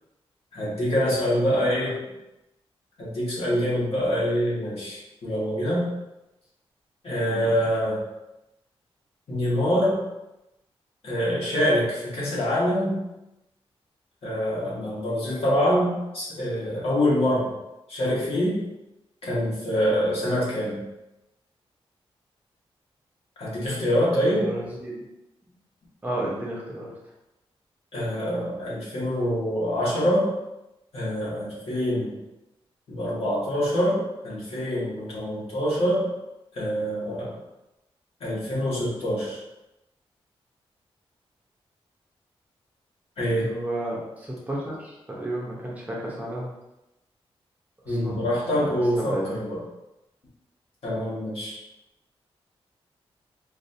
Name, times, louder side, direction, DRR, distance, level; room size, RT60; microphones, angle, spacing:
voice 1, 0.5-2.0 3.0-5.9 7.0-8.0 9.3-10.0 11.0-12.9 14.2-17.5 17.9-18.6 19.2-20.8 23.4-24.5 27.9-30.3 30.9-32.1 32.9-36.1 36.5-37.3 38.2-39.4 43.2-43.5 47.8-49.6 50.8-51.6, equal, 75° left, -7 dB, 1.5 m, -25 dB
voice 2, 7.1-7.5 24.1-25.0 26.0-26.9 43.4-46.5 47.8-48.2 48.5-49.2, right 1 dB, 15° right, -4 dB, 0.8 m, -33 dB
4.0 x 2.6 x 2.7 m, 0.95 s
wide cardioid pair, 120°, 10 cm